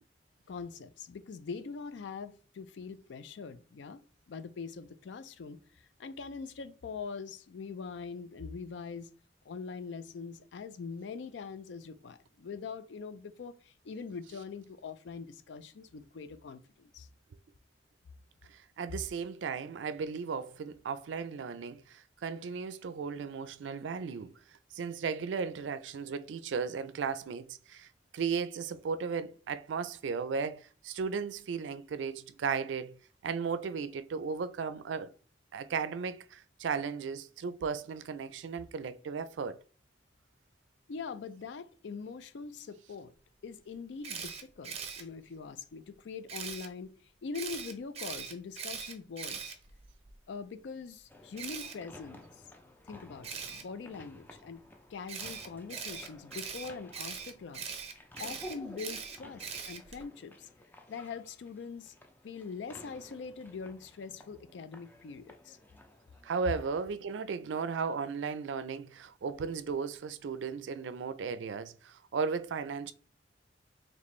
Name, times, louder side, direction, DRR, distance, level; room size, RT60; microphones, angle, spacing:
voice 1, 0.5-4.0 4.3-9.1 9.5-17.1 40.9-43.1 43.4-46.9 47.2-49.6 50.3-52.3 52.9-54.6 54.9-57.7 58.2-60.5 60.9-61.9 62.2-65.6, left 5 dB, 75° left, 0.4 m, -43 dB
voice 2, 18.5-24.3 24.7-27.9 28.1-32.9 33.2-35.1 35.5-39.6 66.2-72.9, right 5 dB, 85° right, 0.4 m, -35 dB
Camera, 44.0-45.0 46.3-46.7 47.3-50.1 51.4-51.7 53.2-53.6 55.1-60.0, right 6 dB, 35° right, 0.6 m, -41 dB
sound 1, 51.1-66.7, left 1 dB, 10° left, 0.4 m, -54 dB
4.2 x 3.1 x 3.1 m
head